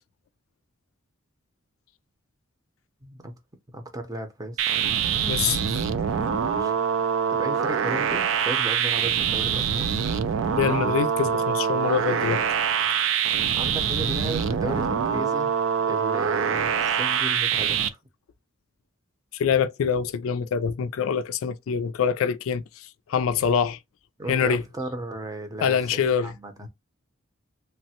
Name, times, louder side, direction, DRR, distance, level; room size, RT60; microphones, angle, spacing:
voice 1, 3.0-3.3 3.7-4.7 6.4-6.7 7.3-10.1 13.6-15.5 15.9-18.0 24.2-26.7, right 1 dB, 20° right, 0.6 m, -35 dB
sound 1, 4.6-17.9, right 7 dB, 70° right, 0.4 m, -24 dB
voice 2, 5.3-5.6 10.6-12.4 19.3-23.8 24.3-24.6 25.6-26.3, left 7 dB, 85° left, 0.3 m, -25 dB
3.2 x 2.1 x 2.7 m
head